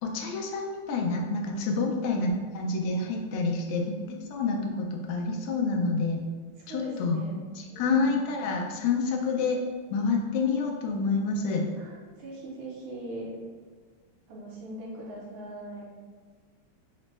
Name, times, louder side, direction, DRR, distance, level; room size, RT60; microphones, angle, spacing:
voice 1, 0.0-6.2 6.7-7.2 7.8-9.6 9.9-11.7, left 4 dB, 85° left, 1 dB, 1.5 m, -28 dB
voice 2, 6.6-8.1 11.8-13.4 14.3-15.8, right 1 dB, 70° right, -3 dB, 1.4 m, -40 dB
4.9 x 2.1 x 3.2 m, 1.5 s
omnidirectional pair, 2.4 m